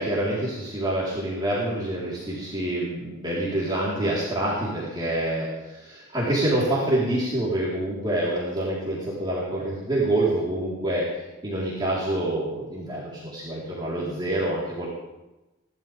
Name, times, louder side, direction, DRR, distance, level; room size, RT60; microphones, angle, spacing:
voice 1, 0.0-11.1 11.4-14.9, right 1 dB, 25° right, -8 dB, 4.3 m, -26 dB
29.0 x 12.5 x 3.7 m, 1.0 s
head